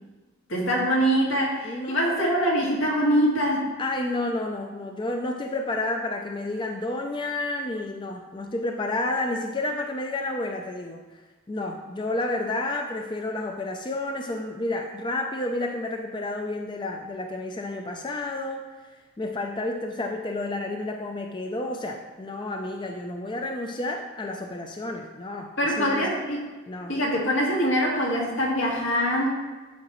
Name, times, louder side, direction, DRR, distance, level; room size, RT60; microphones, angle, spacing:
voice 1, 0.5-3.7 25.6-26.4 26.9-29.3, equal, 80° left, -3 dB, 1.9 m, -23 dB
voice 2, 1.6-2.2 3.8-11.0 11.5-18.6 19.2-25.5 25.8-26.1 26.7-26.9, left 2 dB, 25° left, 2 dB, 0.4 m, -30 dB
11.5 x 4.8 x 3.0 m, 1.3 s
head